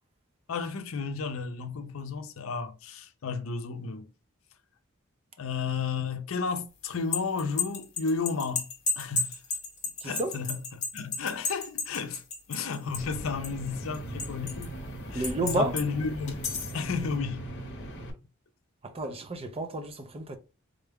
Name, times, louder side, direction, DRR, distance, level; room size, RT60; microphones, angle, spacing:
voice 1, 0.5-4.1 5.4-8.7 9.0-9.4 10.0-12.2 12.5-14.8 15.1-16.4 16.7-17.4, left 5 dB, 75° left, 0.5 m, -33 dB
sound 1, 6.9-13.2 13.4-14.7 15.2-15.9 16.3-16.8, left 4 dB, 35° left, 1.0 m, -32 dB
voice 2, 10.0-10.3 15.1-15.8 18.8-20.4, right 2 dB, 30° right, 0.5 m, -31 dB
sound 2, 12.9-18.1, right 1 dB, 55° left, 0.9 m, -39 dB
3.7 x 2.2 x 3.4 m
head